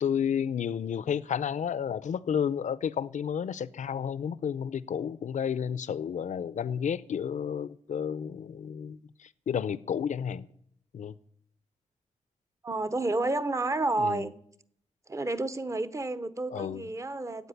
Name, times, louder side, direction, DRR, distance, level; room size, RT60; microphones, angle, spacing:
voice 1, 0.0-10.5 10.9-11.1 14.0-14.2 16.5-16.8, left 8 dB, 75° left, 0.6 m, -31 dB
voice 2, 12.6-14.3 15.1-17.5, right 2 dB, 25° right, 0.8 m, -30 dB
12.5 x 8.5 x 9.8 m
wide cardioid pair, 140°, 13 cm